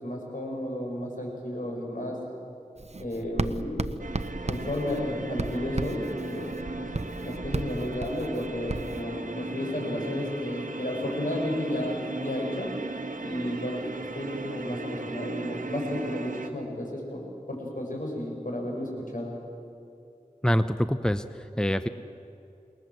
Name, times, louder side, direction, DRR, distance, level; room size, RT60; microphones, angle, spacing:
voice 1, 0.0-2.2 3.0-3.9 4.4-6.9 7.2-12.7 13.2-17.2 17.5-19.3, left 1 dB, 75° left, -1 dB, 6.7 m, -32 dB
Writing, 2.8-9.0, right 3 dB, 55° right, 0.8 m, -35 dB
sound 1, 4.0-16.5, right 2 dB, 70° right, 1.6 m, -37 dB
voice 2, 20.4-21.9, equal, 5° left, 10 dB, 0.8 m, -25 dB
28.0 x 21.0 x 7.7 m, 2.6 s
wide cardioid pair, 40°, 14 cm